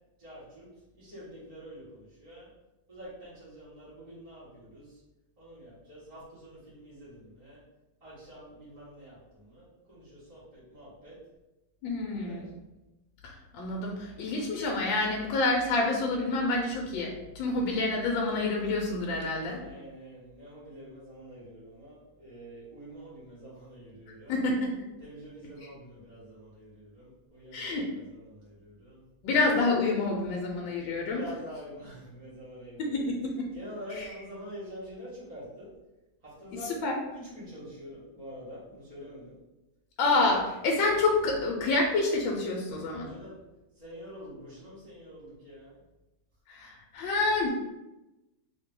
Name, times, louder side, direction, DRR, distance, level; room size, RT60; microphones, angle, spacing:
voice 1, 0.2-0.7 1.0-2.5 2.9-4.8 5.4-7.6 8.0-11.2 12.1-12.4 19.3-24.4 25.0-29.0 31.1-33.1 33.5-35.7 36.2-39.3 42.9-43.4 43.8-45.7, equal, 20° right, -11 dB, 1.1 m, -46 dB
voice 2, 11.8-12.5 13.2-19.6 24.3-24.7 27.5-27.9 29.2-31.3 32.9-33.4 33.9-34.1 36.6-37.0 40.0-43.1 46.5-47.5, left 3 dB, 70° left, -1 dB, 1.2 m, -28 dB
3.3 x 2.8 x 3.6 m, 1.0 s
omnidirectional pair, 2.3 m